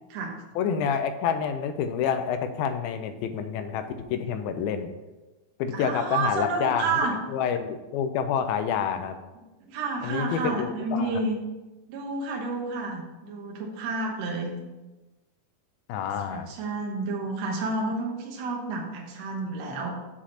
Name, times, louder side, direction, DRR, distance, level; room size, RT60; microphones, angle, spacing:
voice 1, 0.6-4.9 5.6-6.9 7.3-9.2 10.0-11.1 15.9-16.5, left 7 dB, 85° left, 9 dB, 2.4 m, -28 dB
voice 2, 5.7-7.2 9.7-11.4 11.9-14.6 16.3-20.0, right 3 dB, 60° right, -1 dB, 1.9 m, -30 dB
6.9 x 5.0 x 5.7 m, 1.1 s
omnidirectional pair, 4.2 m